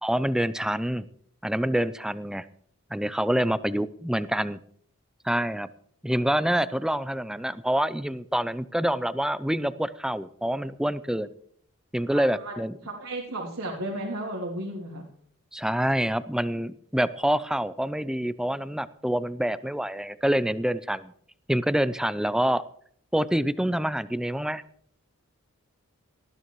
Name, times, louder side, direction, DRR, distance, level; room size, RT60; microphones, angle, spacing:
voice 1, 0.0-1.1 1.4-2.4 2.9-4.6 5.2-5.7 6.0-11.3 11.9-12.7 15.5-21.1 21.5-22.6 23.1-24.6, right 1 dB, 5° right, 14 dB, 0.4 m, -26 dB
voice 2, 12.1-12.6 12.8-15.0, right 1 dB, 90° right, -4 dB, 3.0 m, -34 dB
19.0 x 14.0 x 3.1 m, 0.64 s
head